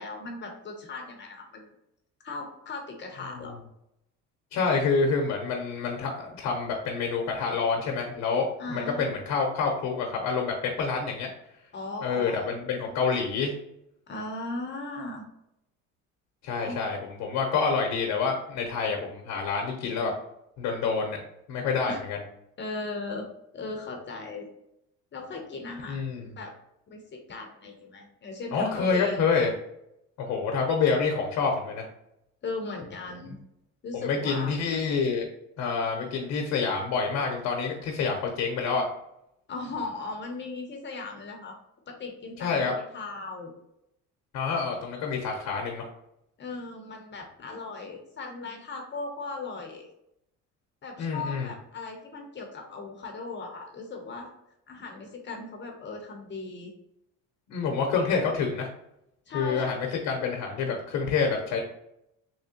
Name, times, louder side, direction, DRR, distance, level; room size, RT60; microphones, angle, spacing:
voice 1, 0.0-1.7 2.2-3.5 8.6-9.2 11.7-12.5 12.8-13.0 14.1-15.2 16.6-16.9 21.9-22.0 22.6-23.3 23.5-24.5 25.1-26.0 26.4-26.5 26.9-29.5 32.4-33.4 33.8-34.5 39.5-41.6 41.9-43.5 46.4-49.9 50.8-54.3 54.7-56.7 59.3-59.8, left 3 dB, 35° left, 2 dB, 0.7 m, -37 dB
voice 2, 4.5-11.3 12.0-13.5 16.4-20.1 20.6-21.2 21.5-22.2 25.9-26.3 28.5-29.5 30.2-31.8 34.0-35.3 35.6-38.9 42.4-42.7 44.3-45.9 51.0-51.5 57.5-58.7 59.3-61.6, left 5 dB, 70° left, 1 dB, 0.8 m, -27 dB
3.6 x 3.0 x 2.8 m, 0.81 s
cardioid pair, 105°, 30 cm